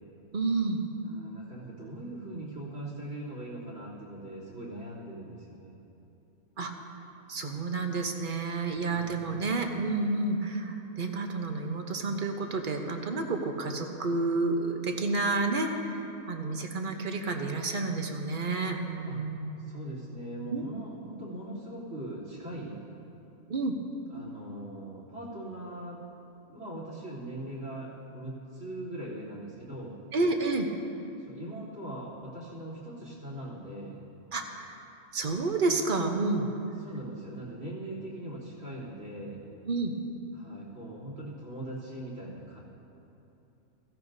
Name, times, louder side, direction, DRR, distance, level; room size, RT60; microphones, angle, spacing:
voice 1, 0.3-0.8 6.6-6.7 7.3-16.0 16.3-19.6 20.5-20.6 23.5-23.7 30.1-30.7 34.3-34.8 35.1-36.5 39.7-39.9, right 3 dB, 40° right, 4 dB, 0.9 m, -30 dB
voice 2, 1.0-5.7 8.7-9.5 19.1-19.2 19.6-22.8 24.1-26.0 26.5-30.0 31.2-34.0 36.8-39.4 40.3-42.6, right 1 dB, 60° right, -4 dB, 3.6 m, -41 dB
16.0 x 15.5 x 2.7 m, 2.8 s
omnidirectional pair, 1.6 m